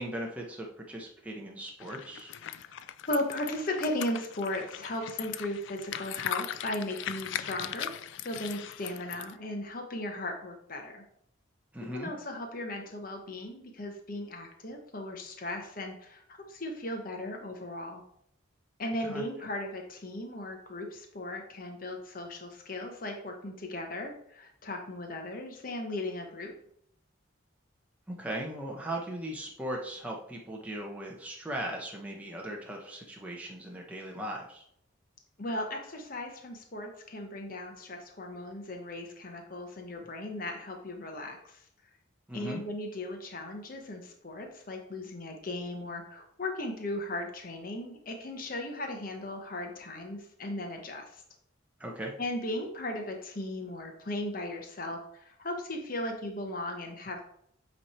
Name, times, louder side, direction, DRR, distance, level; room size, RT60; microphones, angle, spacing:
voice 1, 0.0-2.3 11.7-12.1 19.0-19.2 28.1-34.6 42.3-42.6 51.8-52.1, right 1 dB, 5° right, -2 dB, 0.8 m, -38 dB
sound 1, 1.8-9.3, left 10 dB, 65° left, 0.3 m, -39 dB
voice 2, 2.5-11.0 11.9-18.0 18.8-26.5 35.4-41.7 42.3-51.2 52.2-57.2, left 1 dB, 45° left, 3 dB, 1.0 m, -37 dB
8.4 x 3.3 x 4.3 m, 0.69 s
head